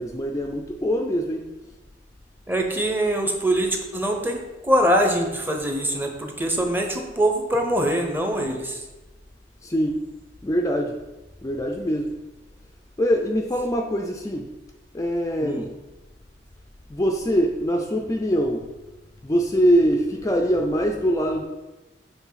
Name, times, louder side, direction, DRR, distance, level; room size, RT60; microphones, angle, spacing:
voice 1, 0.0-1.5 9.6-10.1 10.4-11.0 11.4-12.2 13.0-14.5 14.9-15.7 16.9-18.7 19.2-21.4, equal, 20° left, 2 dB, 0.4 m, -23 dB
voice 2, 2.5-8.8 15.4-15.7, right 1 dB, 10° right, 3 dB, 0.8 m, -23 dB
7.2 x 3.4 x 5.6 m, 1.1 s
head